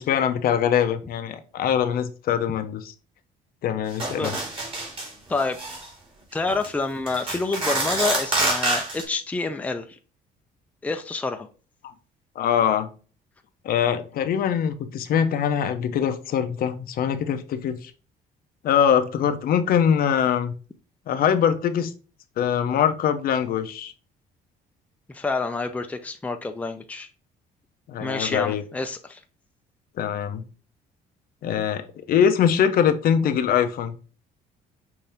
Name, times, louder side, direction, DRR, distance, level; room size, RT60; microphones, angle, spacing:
voice 1, 0.0-2.9 3.6-4.4 12.4-12.9 13.6-17.9 18.6-20.5 21.1-21.9 22.4-23.9 27.9-28.6 30.0-30.4 31.4-34.0, left 8 dB, 60° left, 0.6 m, -23 dB
sound 1, 4.0-5.1 5.4-5.9 6.5-6.7 7.1-9.0, right 2 dB, 30° right, 2.4 m, -26 dB
voice 2, 5.3-5.6 6.3-10.0 10.8-11.5 25.1-27.1 28.0-29.2, left 3 dB, 10° left, 0.5 m, -28 dB
5.7 x 2.7 x 3.4 m
cardioid pair, 110°, 17 cm